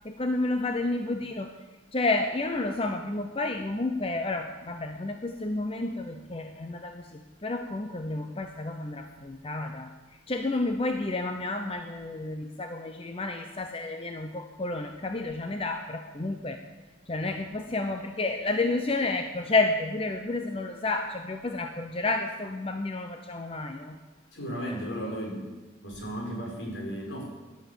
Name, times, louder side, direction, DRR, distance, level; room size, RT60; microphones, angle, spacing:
voice 1, 0.0-1.5 1.9-9.9 10.3-16.6 17.1-24.0, left 2 dB, 30° left, 6 dB, 0.8 m, -30 dB
voice 2, 24.3-25.5 25.8-27.2, equal, 70° left, -1 dB, 5.3 m, -35 dB
17.0 x 11.5 x 7.1 m, 1.2 s
head